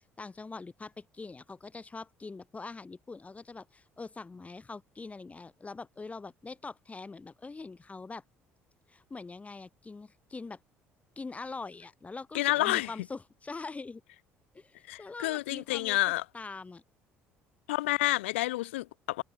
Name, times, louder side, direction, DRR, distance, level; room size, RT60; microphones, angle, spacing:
voice 1, 0.2-8.2 8.9-10.6 11.2-14.0 14.5-16.0 16.3-16.8, left 3 dB, 20° left, 1.8 m, -43 dB
voice 2, 12.3-12.9 14.9-16.2 17.7-19.2, left 18 dB, 70° left, 0.5 m, -29 dB
figure-of-eight pair, 55°, 7 cm